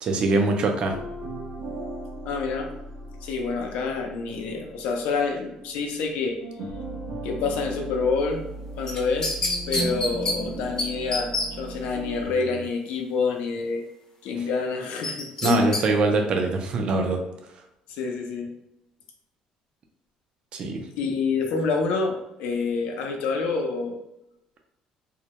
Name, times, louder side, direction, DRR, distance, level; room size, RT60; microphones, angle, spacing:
voice 1, 0.0-0.9 15.4-17.2 20.5-20.8, right 3 dB, 45° right, 3 dB, 0.4 m, -23 dB
sound 1, 0.8-6.1 6.4-12.7, right 2 dB, 80° right, 0.8 m, -37 dB
voice 2, 2.3-2.7 3.2-6.4 7.2-8.4 8.8-9.4 9.7-11.3 11.6-13.8 14.2-15.8 17.9-18.5 21.0-24.0, left 4 dB, 80° left, 3 dB, 0.5 m, -27 dB
sound 2, 8.9-10.4 10.8-10.9 11.1-11.5 15.0-15.8 16.2-16.3, left 2 dB, 30° left, 0.6 m, -26 dB
2.1 x 2.1 x 2.8 m, 0.86 s
cardioid pair, 120°, 2 cm